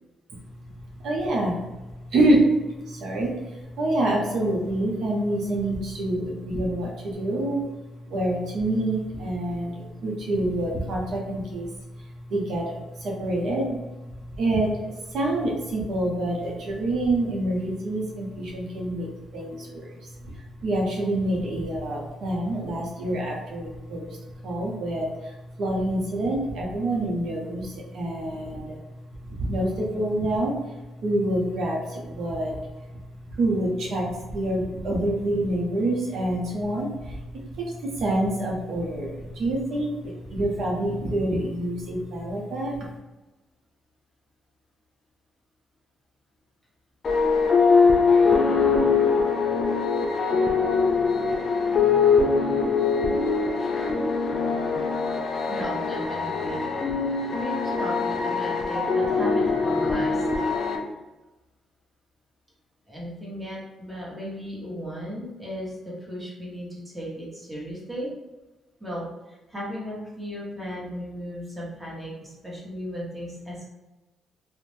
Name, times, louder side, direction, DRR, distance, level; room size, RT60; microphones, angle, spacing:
voice 1, 1.0-1.7 2.1-7.6 8.1-11.7 12.0-28.8 29.2-32.6 33.3-42.9, right 1 dB, 70° right, -2 dB, 0.6 m, -27 dB
sound 1, 47.0-60.8, left 4 dB, 50° left, 0.5 m, -22 dB
voice 2, 55.5-56.6 57.4-60.3 62.9-68.1 68.8-73.7, equal, 10° right, -6 dB, 1.1 m, -36 dB
2.5 x 2.0 x 3.2 m, 1.1 s
cardioid pair, 90°, 0 cm